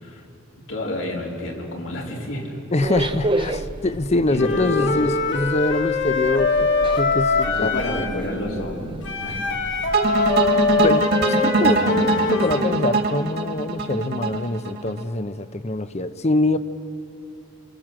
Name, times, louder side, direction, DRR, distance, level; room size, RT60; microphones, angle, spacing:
voice 1, 0.7-2.5 4.3-5.0 7.4-9.4 11.5-12.4, left 1 dB, 80° left, -2 dB, 4.2 m, -29 dB
voice 2, 2.7-6.7 7.0-7.7 8.1-8.2 10.8-16.6, left 2 dB, 35° left, 12 dB, 0.8 m, -24 dB
sound 1, 2.8-10.9, right 1 dB, 25° right, 0.7 m, -32 dB
Wind instrument woodwind instrument, 4.4-8.2 9.0-12.7, left 4 dB, 65° left, 2.2 m, -23 dB
sound 2, 9.9-15.0, right 3 dB, 55° right, 2.2 m, -22 dB
28.0 x 25.5 x 7.5 m, 2.8 s
head